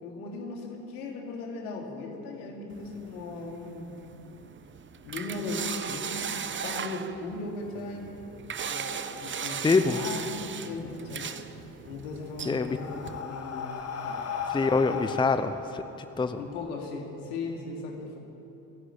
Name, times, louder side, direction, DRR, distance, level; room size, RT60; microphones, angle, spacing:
voice 1, 0.0-4.0 5.0-8.1 8.6-11.3 11.8-13.7 14.0-14.2 14.9-15.0 16.4-18.2, left 3 dB, 70° left, 1 dB, 3.3 m, -37 dB
sound 1, 2.7-13.2, right 7 dB, 25° right, 1.0 m, -38 dB
voice 2, 9.6-10.0 12.5-12.8 14.5-15.8 16.2-16.4, left 4 dB, 10° left, 11 dB, 0.8 m, -25 dB
Breathing, 12.0-16.7, left 6 dB, 30° left, 1.8 m, -37 dB
27.5 x 11.0 x 8.9 m, 2.9 s
figure-of-eight pair, 60°, 46 cm